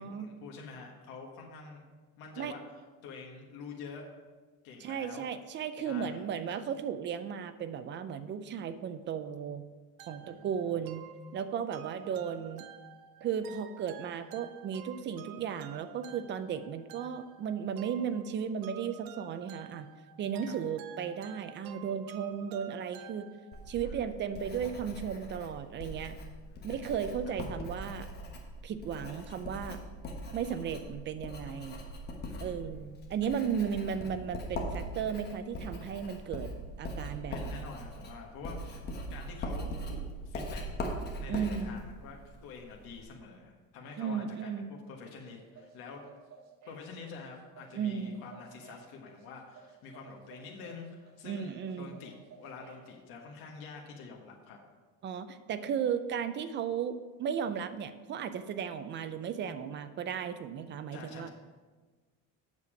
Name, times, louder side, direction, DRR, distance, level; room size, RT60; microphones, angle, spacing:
voice 1, 0.0-1.8 2.2-2.6 3.0-4.1 4.6-5.3 5.8-6.2 10.2-10.8 12.0-12.5 20.4-20.6 23.8-24.1 26.5-26.7 27.2-27.3 32.2-32.8 37.3-38.8 39.1-40.6 41.1-46.0 46.7-54.6 60.9-61.3, left 4 dB, 85° left, 0 dB, 1.5 m, -47 dB
voice 2, 4.8-9.6 10.0-11.0 11.3-12.7 13.2-19.9 20.2-23.3 23.7-26.2 26.6-28.1 28.6-29.8 30.3-31.8 32.4-36.5 36.8-37.4 41.3-41.7 44.0-44.7 47.7-48.2 51.2-52.0 55.0-61.3, right 7 dB, 35° right, 11 dB, 0.4 m, -35 dB
sound 1, 10.0-23.8, right 10 dB, 75° right, 0.7 m, -51 dB
Writing, 23.5-43.0, equal, 30° left, 1.2 m, -41 dB
sound 2, 45.1-52.9, right 5 dB, 50° right, 1.7 m, -56 dB
8.2 x 6.8 x 5.0 m, 1.3 s
cardioid pair, 175°, 35 cm